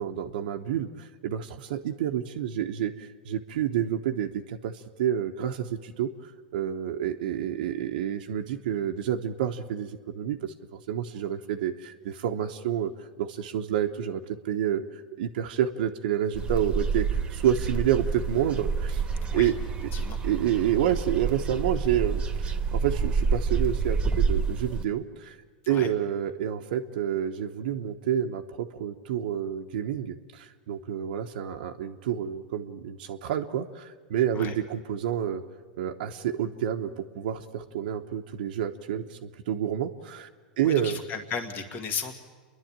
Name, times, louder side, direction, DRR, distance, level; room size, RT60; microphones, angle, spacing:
voice 1, 0.0-19.0 19.3-19.5 20.2-25.4 25.7-35.4 35.8-40.3 40.6-41.0, right 10 dB, 70° right, 3 dB, 1.0 m, -29 dB
sound 1, 16.3-24.9, right 5 dB, 20° right, 1.5 m, -28 dB
voice 2, 40.6-42.1, left 5 dB, 40° left, 6 dB, 2.2 m, -35 dB
28.5 x 11.0 x 8.9 m, 1.4 s
hypercardioid pair, 120°, 5 cm